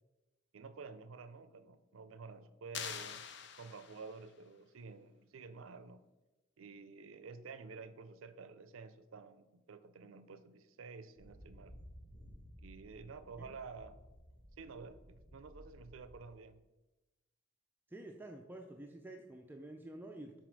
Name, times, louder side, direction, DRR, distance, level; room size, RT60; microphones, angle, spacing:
voice 1, 0.5-3.3 3.6-6.1 6.6-11.7 12.6-14.0 14.6-16.6, right 4 dB, 85° right, 11 dB, 0.5 m, -51 dB
sound 1, 2.7-4.3, left 8 dB, 60° left, 0.5 m, -45 dB
sound 2, 11.2-16.2, equal, 75° left, 1.6 m, -56 dB
voice 2, 17.9-20.4, right 1 dB, 10° right, 3 dB, 0.4 m, -49 dB
6.0 x 4.2 x 4.6 m, 1.1 s
head